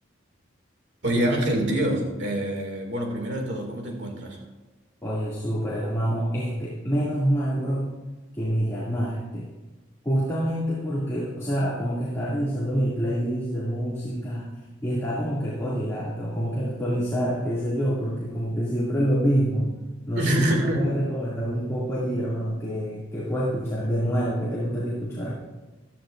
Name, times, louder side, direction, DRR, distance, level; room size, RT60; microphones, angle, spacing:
voice 1, 1.0-4.4 20.2-20.9, right 1 dB, 65° right, 2 dB, 2.3 m, -25 dB
voice 2, 5.0-7.9 8.3-9.5 10.0-14.5 14.8-19.7 20.1-25.4, equal, 15° left, -8 dB, 2.4 m, -26 dB
15.5 x 11.5 x 2.6 m, 1.2 s
head